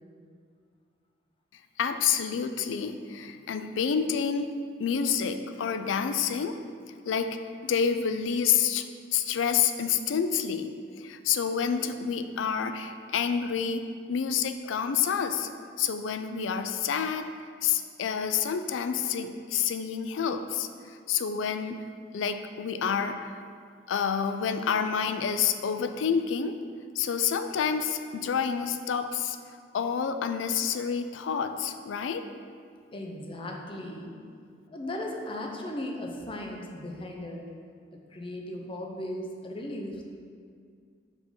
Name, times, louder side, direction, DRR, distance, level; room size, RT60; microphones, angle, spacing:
voice 1, 1.8-4.5 4.8-6.6 7.1-8.9 9.1-15.5 15.8-17.3 17.6-20.7 21.1-21.8 22.1-23.4 23.9-26.6 27.0-29.4 29.7-32.3, left 7 dB, 80° left, 9 dB, 0.4 m, -28 dB
voice 2, 32.9-34.2 34.7-37.5 37.9-40.2, left 1 dB, 30° left, 1 dB, 0.6 m, -37 dB
4.9 x 3.7 x 5.3 m, 2.2 s
head